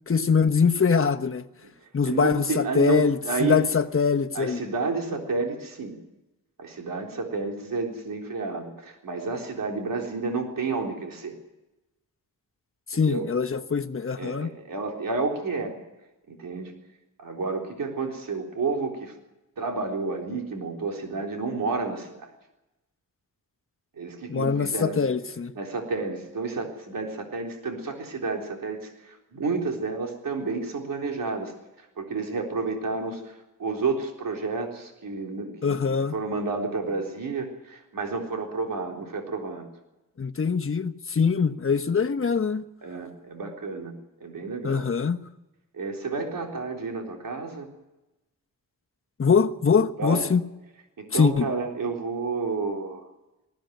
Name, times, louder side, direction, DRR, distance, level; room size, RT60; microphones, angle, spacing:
voice 1, 0.1-1.4 1.9-4.6 12.9-14.5 24.3-25.5 35.6-36.1 40.2-42.7 44.6-45.2 49.2-50.4 51.1-51.5, left 5 dB, 40° left, 1.2 m, -23 dB
voice 2, 2.1-3.6 4.3-6.0 6.6-11.4 12.9-13.2 14.2-15.8 16.3-16.7 17.2-19.1 19.6-22.3 24.0-25.0 25.5-31.5 31.8-39.7 42.8-43.9 44.2-45.1 45.7-47.7 50.0-50.3 51.0-53.1, right 4 dB, 75° right, 3.9 m, -30 dB
20.0 x 15.5 x 9.3 m
wide cardioid pair, 95°, 34 cm